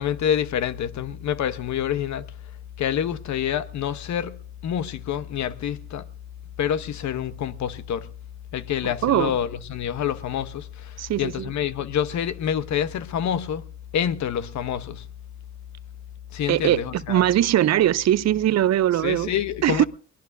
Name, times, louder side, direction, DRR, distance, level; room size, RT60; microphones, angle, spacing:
voice 1, 0.0-2.3 2.8-6.1 6.6-8.1 8.5-13.6 13.9-15.1 16.3-17.2 18.9-19.8, left 9 dB, 70° left, 1.0 m, -27 dB
voice 2, 11.0-11.5 16.5-16.8 17.1-19.3 19.6-19.8, right 12 dB, 60° right, 0.6 m, -20 dB
22.0 x 19.0 x 2.6 m
cardioid pair, 90°, 30 cm